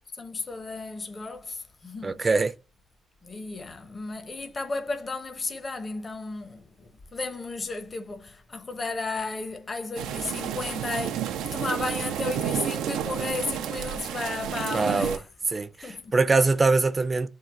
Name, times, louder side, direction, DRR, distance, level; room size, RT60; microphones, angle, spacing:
voice 1, 0.2-2.4 3.2-15.3 15.8-16.1, left 3 dB, 30° left, 0.8 m, -34 dB
voice 2, 2.0-2.5 14.7-15.2 15.5-15.7 16.1-17.3, right 3 dB, 30° right, 0.5 m, -22 dB
sound 1, 10.0-15.2, right 9 dB, 90° right, 0.4 m, -31 dB
3.8 x 2.4 x 4.4 m
cardioid pair, 90°, 0 cm